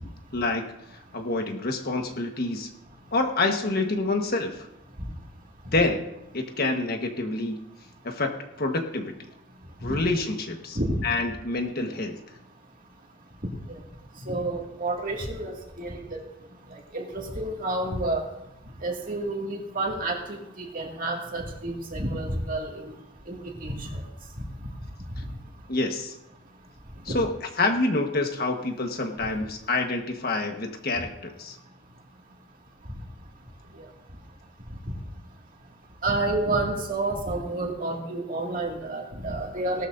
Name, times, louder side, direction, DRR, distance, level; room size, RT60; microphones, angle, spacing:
voice 1, 0.3-0.7 1.1-2.7 3.1-4.7 5.7-6.0 6.3-7.6 8.0-8.3 8.6-9.1 9.8-12.2 25.2-25.3 25.7-26.1 27.0-27.3 27.6-31.6, left 2 dB, 50° left, 4 dB, 1.4 m, -27 dB
voice 2, 14.3-16.2 16.7-18.2 18.8-22.9 23.3-24.0 27.1-27.2 36.0-39.9, right 2 dB, 45° right, 0 dB, 2.3 m, -30 dB
18.0 x 13.0 x 2.7 m, 0.86 s
head